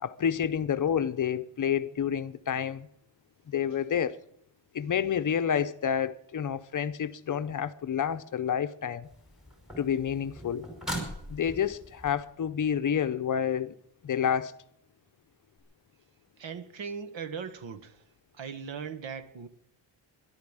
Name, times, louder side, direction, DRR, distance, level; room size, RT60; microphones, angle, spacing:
voice 1, 0.0-2.9 3.5-4.2 4.7-9.1 9.8-10.7 11.3-13.8 14.0-14.5, left 8 dB, 40° left, 0.7 m, -29 dB
sound 1, 9.0-12.1 15.6-15.7, equal, ahead, 5.3 m, -40 dB
voice 2, 16.4-18.0 18.3-19.5, right 6 dB, 70° right, 1.5 m, -39 dB
13.0 x 11.5 x 8.8 m
wide cardioid pair, 160°, 46 cm